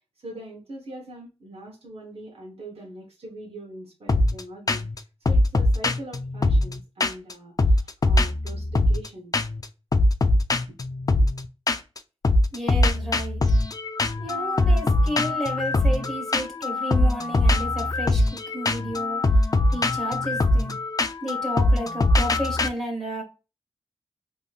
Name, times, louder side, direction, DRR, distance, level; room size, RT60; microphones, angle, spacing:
voice 1, 0.2-9.3 10.7-10.8, right 1 dB, 60° right, -2 dB, 0.9 m, -42 dB
sound 1, 4.1-4.4 4.7-5.0 5.2-7.3 7.6-9.1 9.3-9.6 9.9-12.0 12.2-22.7, left 2 dB, 35° left, 0.3 m, -22 dB
voice 2, 12.5-13.4 14.2-19.2 19.7-20.8 21.2-23.2, equal, 5° left, -1 dB, 1.6 m, -32 dB
3.1 x 2.6 x 2.3 m, 0.30 s
cardioid pair, 50°, 11 cm